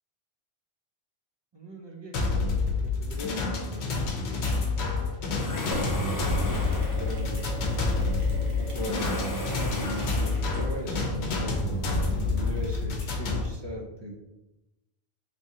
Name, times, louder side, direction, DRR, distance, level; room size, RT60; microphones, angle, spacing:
voice 1, 1.5-4.8 5.7-7.9 8.2-14.2, right 1 dB, 35° right, -1 dB, 0.5 m, -39 dB
sound 1, 2.1-13.4, left 3 dB, 85° left, 0.9 m, -28 dB
sound 2, 5.4-7.2 8.8-10.6, left 1 dB, 30° left, 0.3 m, -36 dB
Mechanisms, 5.7-12.8, right 3 dB, 80° right, 1.2 m, -37 dB
3.6 x 3.1 x 2.7 m, 0.98 s
omnidirectional pair, 1.1 m